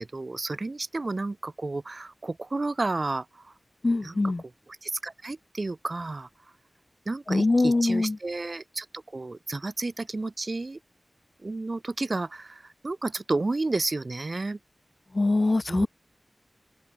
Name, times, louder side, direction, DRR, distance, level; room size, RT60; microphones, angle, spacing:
voice 1, 0.0-3.5 4.0-4.3 4.7-6.3 7.1-10.8 11.4-14.6 15.7-15.9, right 3 dB, 50° right, 1.1 m, -31 dB
voice 2, 3.8-4.4 7.3-8.1 15.2-15.9, left 2 dB, 45° left, 0.4 m, -23 dB
open air
wide cardioid pair, 65°, 0 cm